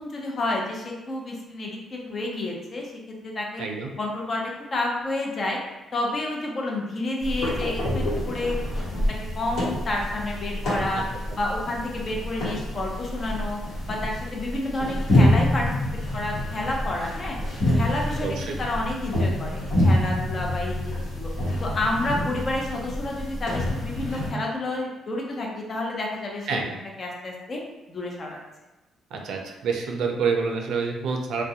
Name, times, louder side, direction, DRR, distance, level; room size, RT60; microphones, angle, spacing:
voice 1, 0.0-3.6 4.0-5.6 5.9-8.6 8.9-9.0 9.3-11.0 11.3-13.6 13.9-15.7 16.1-17.4 17.7-21.3 21.6-26.6 27.0-27.6 27.9-28.4, left 2 dB, 40° left, -1 dB, 0.6 m, -30 dB
voice 2, 3.6-3.9 10.9-11.0 18.2-18.6 26.5-26.8 29.1-31.4, right 5 dB, 80° right, 2 dB, 0.4 m, -27 dB
sound 1, 7.2-24.3, left 1 dB, 70° left, 0.9 m, -27 dB
2.3 x 2.1 x 2.7 m, 1.1 s
cardioid pair, 90°, 0 cm